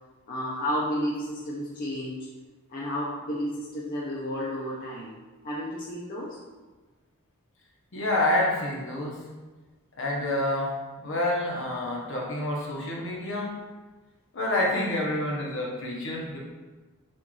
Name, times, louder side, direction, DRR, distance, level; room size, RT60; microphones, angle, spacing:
voice 1, 0.3-2.3 2.7-5.1 5.4-6.4, equal, 40° left, -6 dB, 0.6 m, -32 dB
voice 2, 7.9-9.2 10.0-13.6 14.3-16.4, left 1 dB, 60° left, -2 dB, 0.9 m, -28 dB
6.3 x 2.5 x 3.1 m, 1.3 s
head